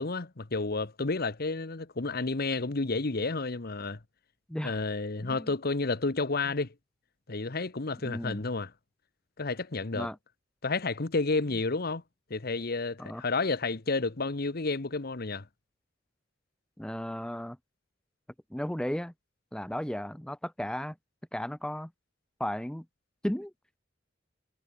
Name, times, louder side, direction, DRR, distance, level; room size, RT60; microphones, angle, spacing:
voice 1, 0.0-4.0 4.6-6.7 7.3-8.7 9.4-10.1 10.6-12.0 12.3-15.4, left 3 dB, 55° left, 1.1 m, -31 dB
voice 2, 8.0-8.4 9.9-10.2 13.0-13.2 16.8-17.6 18.5-19.1 19.5-21.0 21.3-21.9 22.4-22.8 23.2-23.5, equal, 5° left, 0.7 m, -34 dB
head